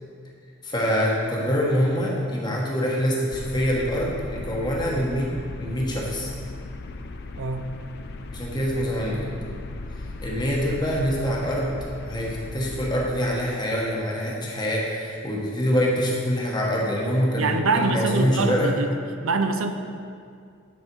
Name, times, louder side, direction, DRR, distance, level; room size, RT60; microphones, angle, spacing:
voice 1, 0.6-5.3 5.6-6.3 8.3-9.3 10.2-11.7 12.0-18.7, equal, 20° left, -3 dB, 1.3 m, -25 dB
sound 1, 3.3-13.1, left 2 dB, 55° left, 0.5 m, -37 dB
voice 2, 17.4-18.9 19.2-19.7, right 3 dB, 85° right, 7 dB, 0.6 m, -24 dB
9.9 x 5.4 x 4.6 m, 2.3 s
head